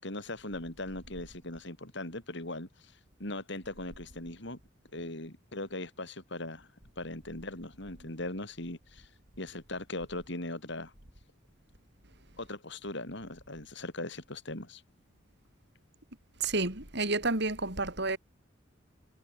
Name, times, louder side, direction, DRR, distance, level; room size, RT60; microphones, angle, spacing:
voice 1, 0.0-2.9 3.2-4.6 4.9-6.7 7.0-9.1 9.4-10.9 12.4-14.8, left 2 dB, 65° left, 5.7 m, -39 dB
voice 2, 16.4-18.2, right 3 dB, 60° right, 7.5 m, -30 dB
head